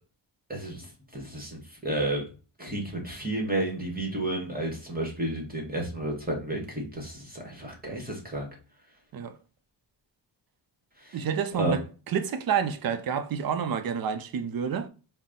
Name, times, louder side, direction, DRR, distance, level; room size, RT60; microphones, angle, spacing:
voice 1, 0.5-2.2 2.6-8.5 11.0-11.2 11.5-11.8, right 1 dB, 20° right, 1.2 m, -31 dB
voice 2, 11.1-14.9, right 7 dB, 55° right, 0.5 m, -29 dB
3.9 x 2.1 x 3.6 m
cardioid pair, 80°, 44 cm